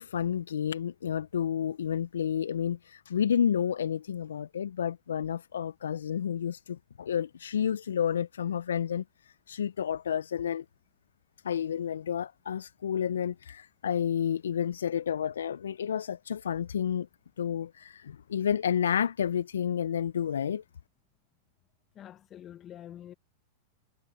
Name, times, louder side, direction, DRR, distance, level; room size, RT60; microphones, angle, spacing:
voice 1, 0.0-10.6 11.4-17.1 17.4-20.6, left 8 dB, 75° left, 0.6 m, -30 dB
voice 2, 22.0-23.1, left 11 dB, 30° left, 1.4 m, -46 dB
hypercardioid pair, 100°, 0 cm